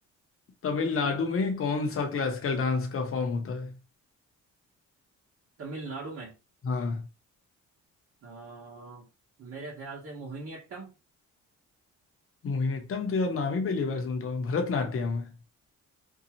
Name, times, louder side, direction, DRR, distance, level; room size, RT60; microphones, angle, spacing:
voice 1, 0.6-3.7 6.6-7.0 12.4-15.3, left 4 dB, 45° left, 0.8 m, -29 dB
voice 2, 5.6-6.3 8.2-9.1 9.4-10.9, right 3 dB, 50° right, 1.0 m, -40 dB
2.7 x 2.3 x 2.8 m
cardioid pair, 90°, 30 cm